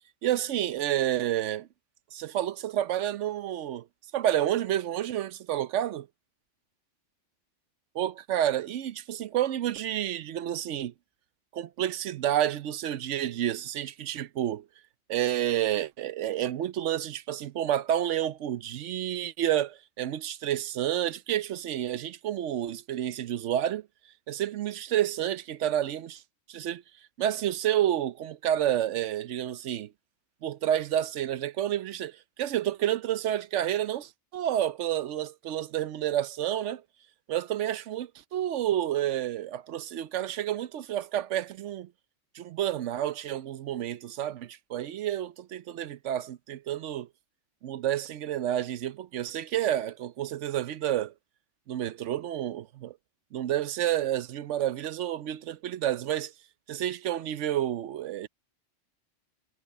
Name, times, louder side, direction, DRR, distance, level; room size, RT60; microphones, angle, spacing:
voice 1, 0.2-1.7 2.1-3.9 4.1-6.1 7.9-10.9 11.5-14.7 15.1-23.9 24.3-26.2 26.5-26.8 27.2-29.9 30.4-36.8 37.3-41.9 42.3-47.1 47.6-51.1 51.7-53.0 53.3-56.3 56.7-58.3, right 11 dB, 80° right, 1.0 m, -29 dB
omnidirectional pair, 1.2 m